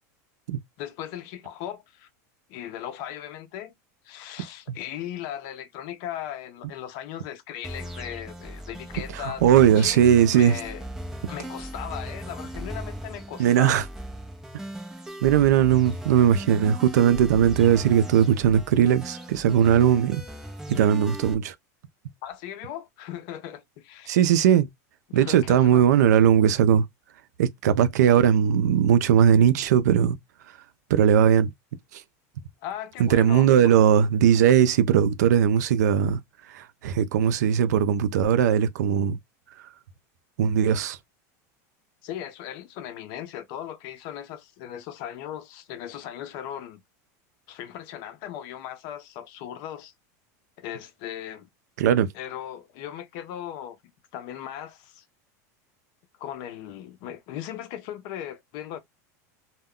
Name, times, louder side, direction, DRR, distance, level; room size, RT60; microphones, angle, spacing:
voice 1, 0.8-2.1 2.5-3.7 4.0-10.0 10.3-10.9 11.3-13.9 22.2-24.1 25.1-25.9 32.6-33.7 42.0-46.8 47.5-49.9 50.6-51.5 52.1-53.8 54.1-55.0 56.2-58.8, left 11 dB, 55° left, 0.6 m, -38 dB
sound 1, 7.6-21.3, right 1 dB, 5° right, 0.6 m, -38 dB
voice 2, 9.2-10.6 13.4-13.8 15.2-20.2 20.7-21.5 24.1-24.7 25.1-26.8 27.4-30.2 30.9-31.5 31.9-32.0 33.0-36.2 36.5-39.2 40.4-41.0 51.8-52.1, right 9 dB, 90° right, 0.4 m, -19 dB
2.2 x 2.1 x 3.5 m
supercardioid pair, 130°, 9 cm